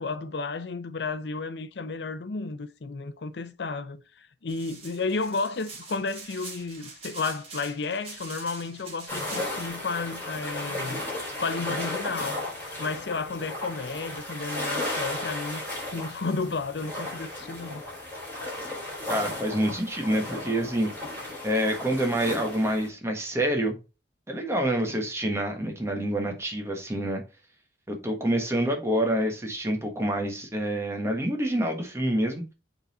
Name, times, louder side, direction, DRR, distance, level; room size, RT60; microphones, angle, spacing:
voice 1, 0.0-12.4 12.8-15.6 15.9-17.8, left 4 dB, 70° left, 0.6 m, -32 dB
sound 1, 4.5-9.7, right 3 dB, 35° right, 2.1 m, -44 dB
sound 2, 9.1-22.9, left 1 dB, 10° left, 4.3 m, -35 dB
voice 2, 19.1-20.9 21.4-23.8 24.3-27.2 27.9-32.4, right 1 dB, 15° right, 1.3 m, -27 dB
6.7 x 4.0 x 4.1 m
head